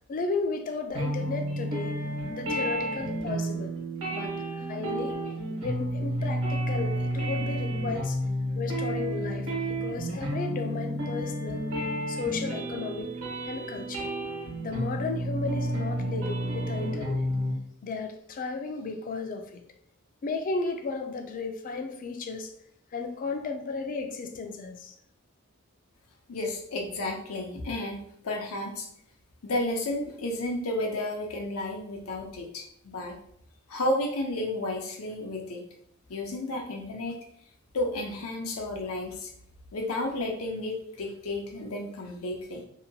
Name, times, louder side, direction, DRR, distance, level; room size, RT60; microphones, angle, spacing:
voice 1, 0.1-2.0 2.3-3.7 4.1-5.2 5.6-8.2 8.6-11.6 12.1-13.1 13.5-14.1 14.6-17.3 17.8-19.6 20.2-22.5 22.9-24.9, left 4 dB, 40° left, 6 dB, 0.3 m, -34 dB
sound 1, 0.9-17.5, right 1 dB, 70° right, 1.2 m, -31 dB
voice 2, 26.3-28.9 29.4-33.2 33.7-35.6 36.1-37.1 37.7-39.3 39.7-42.6, left 1 dB, 90° left, 1 dB, 0.6 m, -32 dB
2.8 x 2.2 x 2.7 m, 0.68 s
head